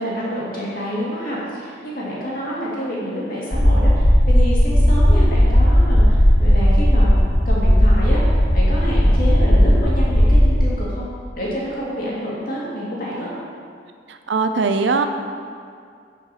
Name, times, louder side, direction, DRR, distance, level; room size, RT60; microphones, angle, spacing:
voice 1, 0.0-7.2 7.4-11.0 11.3-13.3, equal, 50° left, -6 dB, 2.2 m, -28 dB
sound 1, 3.5-10.6, equal, 10° left, 0.7 m, -15 dB
voice 2, 14.1-15.1, right 4 dB, 75° right, 7 dB, 0.5 m, -20 dB
8.1 x 6.5 x 4.2 m, 2.3 s
head